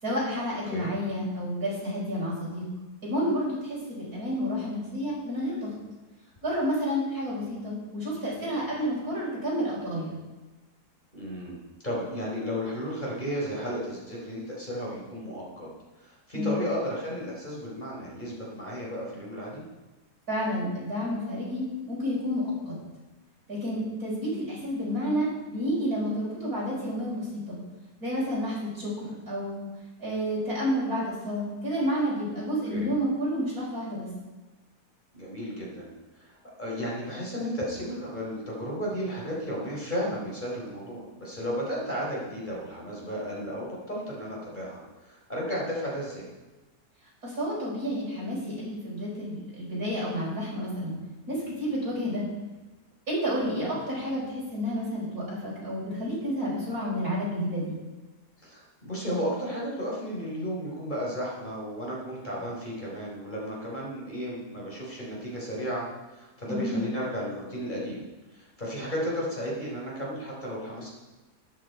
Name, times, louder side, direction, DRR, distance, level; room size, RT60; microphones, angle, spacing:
voice 1, 0.0-2.6 3.0-5.7 6.4-10.1 16.3-16.6 20.3-22.7 23.5-27.6 28.0-29.7 30.0-34.1 47.2-50.9 51.3-52.2 53.1-57.7 66.5-66.8, equal, 65° right, -6 dB, 6.1 m, -30 dB
voice 2, 11.1-15.7 16.0-19.6 32.7-32.9 35.1-46.3 53.4-53.6 58.4-70.9, equal, 30° left, -5 dB, 4.4 m, -34 dB
13.0 x 10.5 x 4.7 m, 1.1 s
omnidirectional pair, 1.7 m